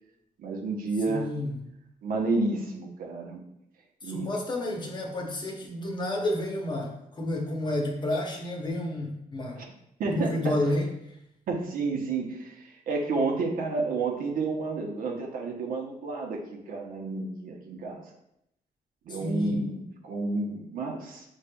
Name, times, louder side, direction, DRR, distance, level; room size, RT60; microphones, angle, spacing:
voice 1, 0.4-1.3 2.0-3.4 4.0-4.3 9.6-9.7 10.0-10.6 11.5-18.1 19.1-19.7 20.0-21.2, right 3 dB, 80° right, 0 dB, 0.9 m, -30 dB
voice 2, 1.1-1.6 4.0-9.6 10.1-10.9 19.1-19.7, left 1 dB, 30° left, 1 dB, 0.9 m, -30 dB
6.6 x 3.2 x 2.2 m, 0.78 s
cardioid pair, 130°, 14 cm